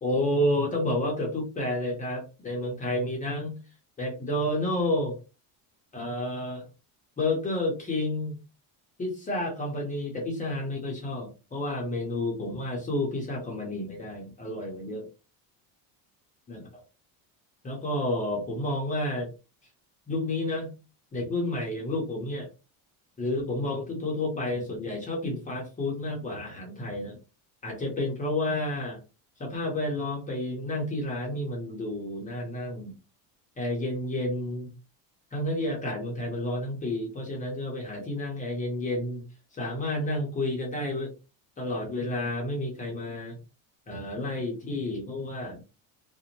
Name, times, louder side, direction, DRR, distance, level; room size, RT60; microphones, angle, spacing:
voice 1, 0.0-3.5 4.0-5.1 5.9-6.6 7.2-8.4 9.0-15.1 16.5-16.6 17.6-19.3 20.1-20.7 21.1-22.5 23.2-27.2 27.6-29.0 29.4-32.9 33.6-34.7 35.3-39.2 39.5-41.1 41.6-43.4 43.9-45.6, left 1 dB, 15° left, -1 dB, 0.6 m, -30 dB
2.6 x 2.1 x 2.8 m, 0.30 s
cardioid pair, 160°, 45 cm